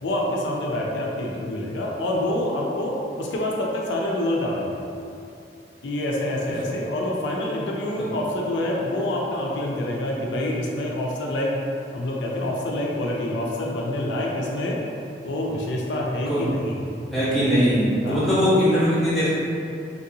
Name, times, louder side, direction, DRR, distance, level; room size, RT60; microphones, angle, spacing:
voice 1, 0.0-4.8 5.8-11.6 11.9-14.8 15.2-16.8 18.0-18.3, left 1 dB, 90° left, -2 dB, 0.4 m, -26 dB
voice 2, 17.1-19.3, equal, ahead, -13 dB, 1.0 m, -20 dB
3.0 x 2.6 x 2.7 m, 2.6 s
head